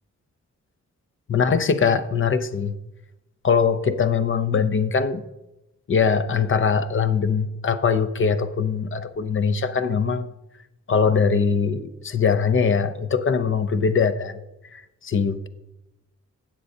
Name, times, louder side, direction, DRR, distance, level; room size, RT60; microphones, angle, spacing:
voice 1, 1.3-2.8 3.4-5.2 5.9-10.2 10.9-14.4 14.7-15.5, left 6 dB, 40° left, 0.6 m, -22 dB
16.0 x 7.5 x 2.7 m
wide cardioid pair, 140°, 30 cm